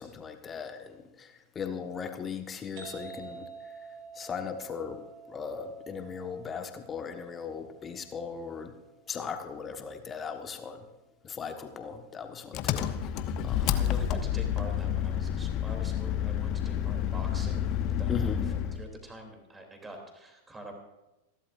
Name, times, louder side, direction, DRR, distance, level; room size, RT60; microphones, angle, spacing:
voice 1, 0.0-3.9 4.1-5.0 5.3-8.7 9.1-10.8 11.2-13.0 13.4-13.8 14.1-14.2 18.1-18.4, left 6 dB, 20° left, 6 dB, 1.4 m, -38 dB
sound 1, 2.8-10.2, right 5 dB, 45° right, 3.1 m, -49 dB
Engine, 12.5-18.8, left 9 dB, 40° left, 0.8 m, -29 dB
voice 2, 13.6-17.7 18.0-18.1 18.8-20.7, right 1 dB, 10° right, 3 dB, 3.0 m, -45 dB
27.0 x 12.0 x 2.6 m, 1.0 s
figure-of-eight pair, 90°, 0 cm